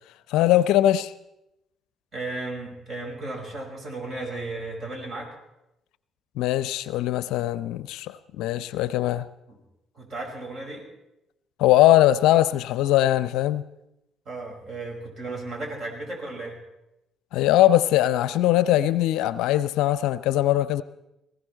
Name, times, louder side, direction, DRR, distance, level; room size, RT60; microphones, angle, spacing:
voice 1, 0.3-1.1 6.4-9.3 11.6-13.6 17.3-20.8, left 13 dB, 70° left, 0.5 m, -21 dB
voice 2, 2.1-5.3 9.5-9.6 9.9-10.9 14.3-16.6, right 2 dB, 50° right, 5.5 m, -35 dB
19.5 x 16.0 x 4.3 m
hypercardioid pair, 50°, 0 cm